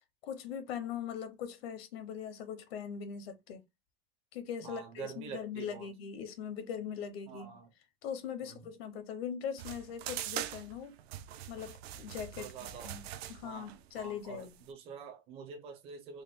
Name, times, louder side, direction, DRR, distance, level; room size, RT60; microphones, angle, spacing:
voice 1, 0.3-3.6 4.3-7.5 8.0-10.9 11.5-12.5 12.8-13.0 13.3-14.5, left 8 dB, 70° left, 0.8 m, -41 dB
voice 2, 4.6-5.9 7.3-7.7 8.4-8.6 12.4-13.0 13.4-16.2, right 6 dB, 20° right, 0.5 m, -47 dB
sound 1, 9.6-14.7, right 11 dB, 75° right, 0.6 m, -43 dB
4.0 x 2.1 x 3.5 m
supercardioid pair, 180°, 31 cm